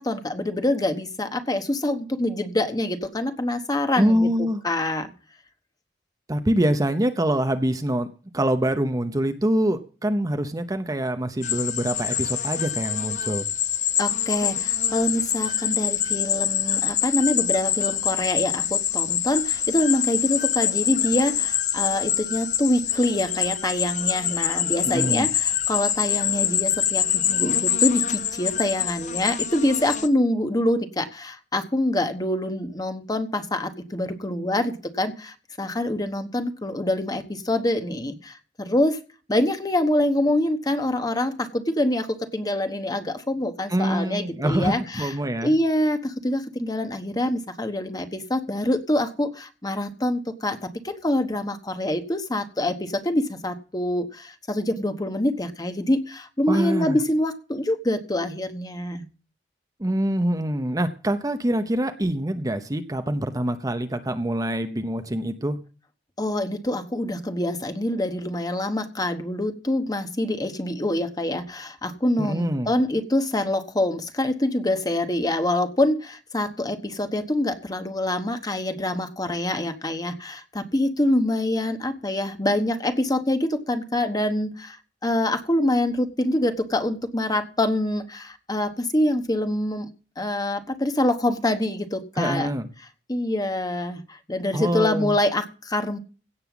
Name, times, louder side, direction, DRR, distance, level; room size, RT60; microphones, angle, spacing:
voice 1, 0.0-4.3 4.6-5.1 14.0-39.0 39.3-45.1 45.4-59.1 66.2-89.9 90.2-92.5 93.1-96.0, left 1 dB, 20° left, 8 dB, 1.2 m, -25 dB
voice 2, 4.0-4.6 6.3-8.1 8.3-13.5 24.9-25.3 43.7-45.5 56.5-57.0 59.8-65.6 72.2-72.7 92.2-92.7 94.5-95.2, right 1 dB, 20° right, 8 dB, 0.8 m, -25 dB
sound 1, 11.4-30.1, left 10 dB, 45° left, 0.8 m, -25 dB
16.5 x 5.6 x 7.2 m, 0.37 s
head